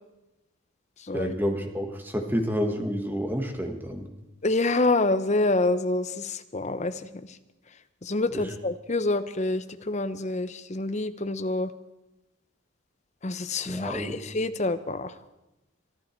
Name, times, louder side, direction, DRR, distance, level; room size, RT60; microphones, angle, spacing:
voice 1, 1.1-4.1 8.3-8.5 13.6-14.2, equal, 10° right, 4 dB, 1.5 m, -29 dB
voice 2, 4.4-7.0 8.0-11.7 13.2-15.1, left 2 dB, 35° left, 11 dB, 0.7 m, -27 dB
24.0 x 11.5 x 4.5 m, 0.97 s
head